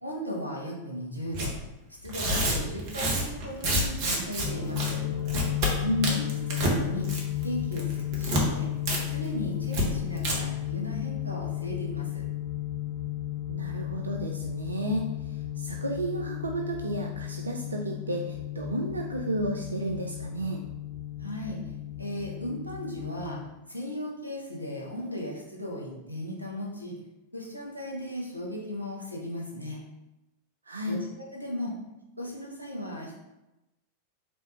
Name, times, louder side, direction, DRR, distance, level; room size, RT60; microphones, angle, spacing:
voice 1, 0.0-1.5 2.0-5.0 6.1-7.1 7.4-8.7 9.1-12.2 21.2-21.6 22.0-23.4 23.7-27.0 27.3-29.8 30.9-31.8 32.2-33.1, equal, 90° left, -1 dB, 0.9 m, -36 dB
Tearing, 1.3-1.5 2.0-4.5 4.8-4.9 5.3-5.7 6.0-6.8 7.0-7.4 7.7-8.4 8.9-9.0 9.3-9.4 9.7-9.8 10.2-10.3, right 1 dB, 45° right, 0.9 m, -28 dB
sound 1, 4.4-23.4, left 12 dB, 50° left, 1.2 m, -34 dB
voice 2, 5.8-6.2 13.5-15.1 15.6-20.6 30.7-31.0, right 1 dB, 75° right, 1 dB, 0.3 m, -32 dB
3.5 x 3.4 x 2.8 m, 0.97 s
figure-of-eight pair, 90°, 0 cm